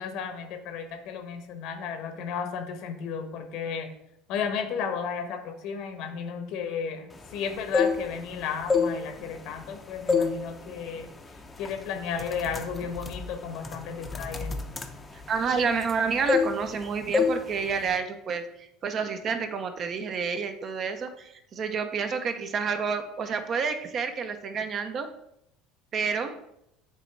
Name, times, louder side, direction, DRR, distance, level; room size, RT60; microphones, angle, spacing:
voice 1, 0.0-3.9 4.3-11.1 11.6-14.5, left 6 dB, 65° left, 6 dB, 1.0 m, -33 dB
sound 1, 7.5-8.3 8.6-9.7 10.1-10.4 10.8-11.0 11.6-11.8 12.1-16.0 16.3-16.8 17.1-17.4 17.7-18.0, left 5 dB, 20° left, 0.6 m, -27 dB
voice 2, 15.3-25.1 25.9-26.3, right 5 dB, 40° right, 7 dB, 0.7 m, -29 dB
6.8 x 3.0 x 4.5 m, 0.78 s
supercardioid pair, 115°, 0 cm